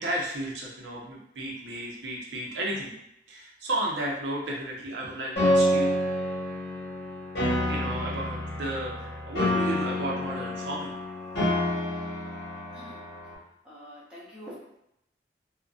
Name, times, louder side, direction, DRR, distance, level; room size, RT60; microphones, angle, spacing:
voice 1, 0.0-2.9 3.3-6.0 7.7-10.9, right 1 dB, 90° right, -3 dB, 0.6 m, -33 dB
Piano, 5.4-13.3, left 1 dB, 70° left, 1.1 m, -28 dB
voice 2, 13.6-14.6, equal, 5° right, -8 dB, 0.6 m, -45 dB
2.5 x 2.1 x 2.3 m, 0.81 s
head